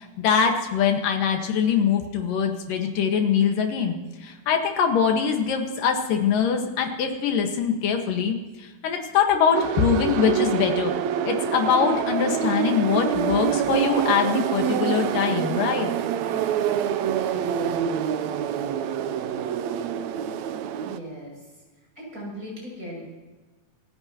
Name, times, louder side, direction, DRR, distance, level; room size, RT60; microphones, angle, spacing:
voice 1, 0.0-10.9 11.2-15.9, left 7 dB, 80° left, 4 dB, 3.3 m, -23 dB
sound 1, 9.5-21.0, right 9 dB, 70° right, 1.8 m, -26 dB
voice 2, 20.8-21.4 22.0-23.0, equal, 25° right, -3 dB, 7.5 m, -38 dB
27.5 x 14.5 x 3.0 m, 1.2 s
omnidirectional pair, 3.8 m